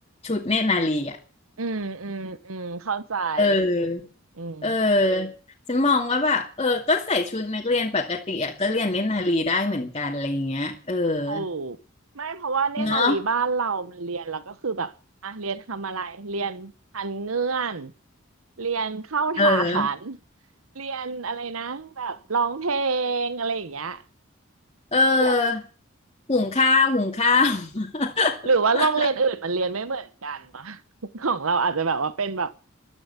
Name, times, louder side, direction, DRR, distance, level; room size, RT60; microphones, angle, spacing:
voice 1, 0.2-1.2 3.4-4.0 4.6-5.3 5.7-11.5 12.8-13.2 19.4-19.9 24.9-25.6 26.3-28.4 28.7-29.1, left 3 dB, 30° left, 2.3 m, -23 dB
voice 2, 1.6-3.6 4.4-4.7 11.3-11.8 12.1-14.9 15.2-17.9 18.6-20.2 20.7-24.0 25.2-25.3 28.4-30.8 31.1-32.5, right 4 dB, 90° right, 1.1 m, -27 dB
14.0 x 12.0 x 8.4 m
head